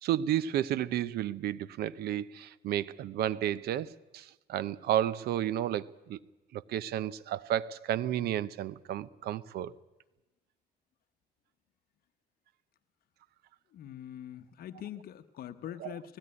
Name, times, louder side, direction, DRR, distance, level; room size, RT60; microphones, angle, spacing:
voice 1, 0.0-6.2 6.5-9.7 15.8-15.9, right 11 dB, 70° right, 0.7 m, -32 dB
voice 2, 13.7-16.2, left 10 dB, 60° left, 1.0 m, -43 dB
18.5 x 15.5 x 9.7 m
cardioid pair, 110°, 17 cm